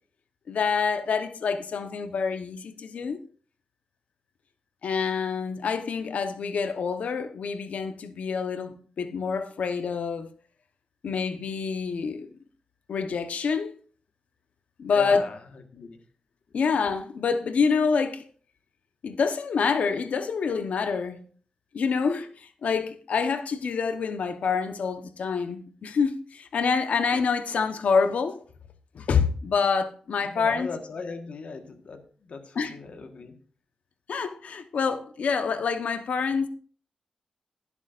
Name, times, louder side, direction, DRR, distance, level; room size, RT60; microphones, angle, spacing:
voice 1, 0.5-3.2 4.8-10.3 11.0-12.3 12.9-13.7 14.8-15.2 16.5-18.2 19.0-21.2 21.7-28.4 28.9-30.7 32.6-32.7 34.1-36.5, left 5 dB, 85° left, 1.0 m, -27 dB
voice 2, 14.9-16.0 30.2-33.3, left 4 dB, 65° left, 1.4 m, -39 dB
21.0 x 7.3 x 2.5 m
wide cardioid pair, 120°, 2 cm